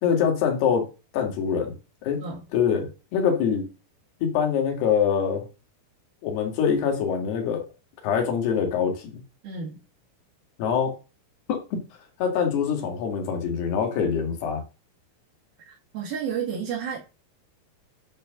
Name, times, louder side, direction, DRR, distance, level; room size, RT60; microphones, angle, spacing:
voice 1, 0.0-0.8 1.1-1.7 2.0-2.2 2.5-3.6 4.2-5.5 6.2-7.6 8.0-9.2 10.6-10.9 11.5-11.6 12.2-14.6, left 7 dB, 90° left, 4.0 m, -24 dB
voice 2, 9.4-9.8 15.7-17.0, right 7 dB, 70° right, 3.8 m, -31 dB
10.0 x 4.5 x 6.4 m
omnidirectional pair, 4.5 m